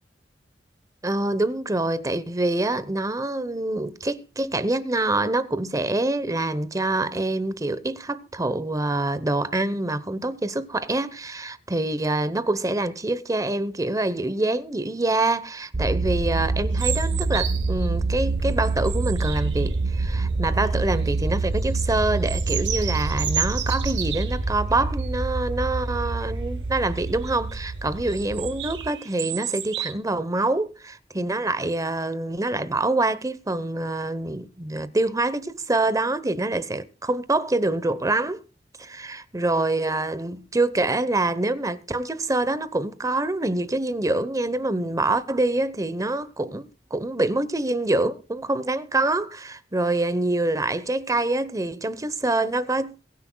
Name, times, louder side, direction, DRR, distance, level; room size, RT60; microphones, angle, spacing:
voice 1, 1.0-38.4 38.8-53.0, right 2 dB, 20° right, 0.9 m, -25 dB
sound 1, 15.7-28.9, right 3 dB, 55° right, 0.7 m, -26 dB
sound 2, 16.7-17.9 18.4-20.0 20.7-21.2 21.6-24.4 25.0-25.2 25.6-25.7 26.1-26.4 27.0-27.6 28.1-29.9, right 9 dB, 80° right, 1.9 m, -32 dB
22.5 x 10.0 x 2.3 m
head